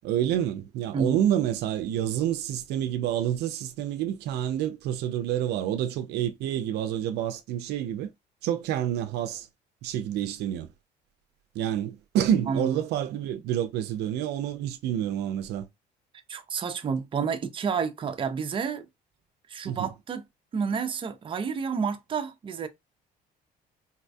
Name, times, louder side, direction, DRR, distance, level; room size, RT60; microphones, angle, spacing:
voice 1, 0.0-8.1 8.4-9.5 9.8-10.7 11.5-15.7 19.6-19.9, right 10 dB, 80° right, 0.5 m, -28 dB
voice 2, 16.3-18.9 19.5-20.2 20.5-22.7, right 6 dB, 30° right, 0.5 m, -29 dB
4.0 x 2.2 x 2.6 m
cardioid pair, 110°, 17 cm